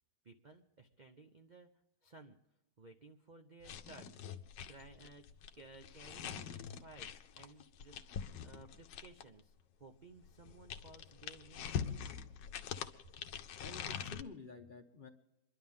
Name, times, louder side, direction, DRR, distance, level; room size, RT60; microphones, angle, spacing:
voice 1, 0.2-2.4 2.8-4.2 4.7-12.1, right 3 dB, 65° right, 5 dB, 0.4 m, -58 dB
sound 1, 3.6-9.4 10.2-14.2, left 8 dB, 75° left, 1.4 m, -44 dB
voice 2, 13.6-15.1, left 4 dB, 40° left, 4 dB, 0.7 m, -51 dB
27.5 x 11.5 x 3.6 m, 0.97 s
omnidirectional pair, 2.0 m